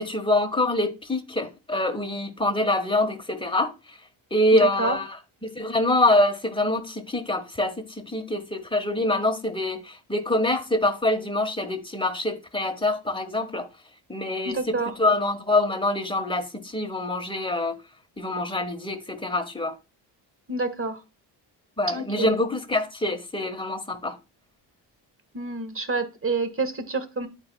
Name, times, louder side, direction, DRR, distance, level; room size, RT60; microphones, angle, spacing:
voice 1, 0.0-3.7 4.3-5.2 5.4-13.7 14.1-17.7 18.2-19.8 21.8-24.1, left 1 dB, 10° left, 1.4 m, -25 dB
voice 2, 4.5-5.0 14.4-14.9 20.5-21.0 21.9-22.3 25.3-27.3, right 3 dB, 25° right, 1.6 m, -28 dB
12.5 x 4.6 x 2.3 m
supercardioid pair, 70°, 48 cm